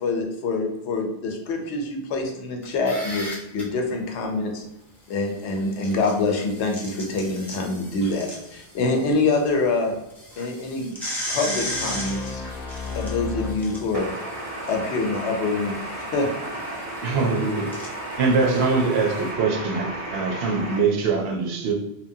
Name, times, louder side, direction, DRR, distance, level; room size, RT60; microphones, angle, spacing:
voice 1, 0.0-4.6 5.1-9.9 10.4-10.9 11.3-12.4 12.9-14.1 14.7-15.8 16.1-16.3, left 3 dB, 90° left, 2 dB, 0.9 m, -25 dB
sound 1, 2.6-3.6 5.6-9.2 9.5-9.6 10.1-19.3, equal, ahead, 0.5 m, -36 dB
sound 2, 11.5-14.3, left 4 dB, 40° left, 0.6 m, -34 dB
voice 2, 13.9-20.8, right 1 dB, 50° right, -4 dB, 0.4 m, -33 dB
voice 3, 17.0-17.7 18.2-21.7, right 4 dB, 75° right, 1 dB, 0.8 m, -23 dB
2.8 x 2.2 x 2.6 m, 0.90 s
omnidirectional pair, 1.1 m